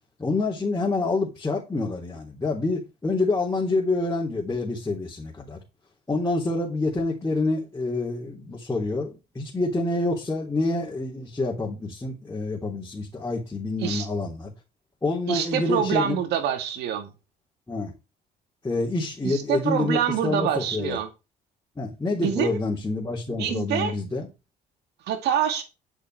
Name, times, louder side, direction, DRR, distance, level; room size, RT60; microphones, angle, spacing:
voice 1, 0.2-5.6 6.1-14.5 15.0-16.2 17.7-17.9 18.6-21.0 21.8-24.3, left 2 dB, 15° left, 3.4 m, -27 dB
voice 2, 15.3-17.1 19.2-21.1 22.2-22.6 23.3-23.9 25.1-25.6, right 9 dB, 80° right, 2.2 m, -26 dB
11.0 x 7.0 x 4.8 m
cardioid pair, 110°, 17 cm